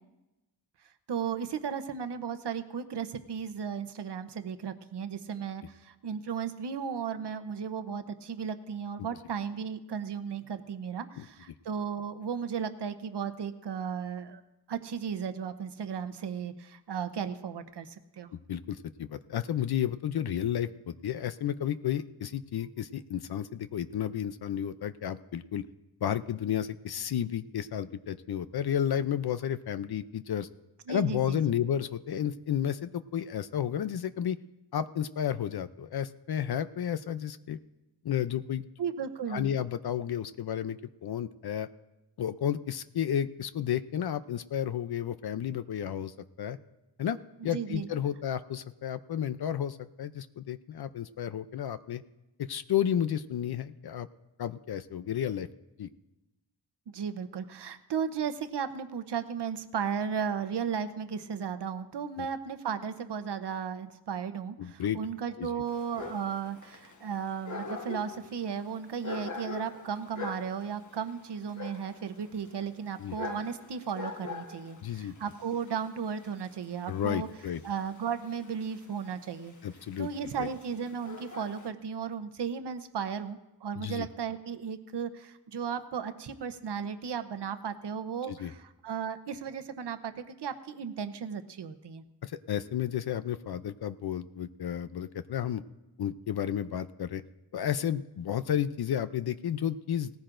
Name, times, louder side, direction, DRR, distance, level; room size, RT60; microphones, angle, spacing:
voice 1, 1.1-14.4 14.7-18.3 30.9-31.4 38.8-39.5 47.5-47.9 56.9-77.3 77.6-79.5 80.0-92.0, right 7 dB, 80° right, 9 dB, 0.9 m, -35 dB
voice 2, 18.3-25.7 26.0-30.5 30.9-34.4 34.7-37.6 38.0-38.6 39.3-41.7 42.2-46.6 47.0-47.2 47.4-52.0 52.4-54.1 54.4-55.5 55.8-55.9 62.2-62.3 64.6-65.0 65.4-65.5 73.0-73.2 74.8-75.1 76.9-77.6 79.6-80.1 80.4-80.5 83.8-84.1 88.2-88.5 92.2-95.6 96.0-97.2 97.5-100.1, left 9 dB, 65° left, 12 dB, 0.6 m, -32 dB
Dog, 65.7-81.7, left 4 dB, 45° left, 1.3 m, -44 dB
18.0 x 14.5 x 2.6 m, 1.0 s
wide cardioid pair, 90°, 41 cm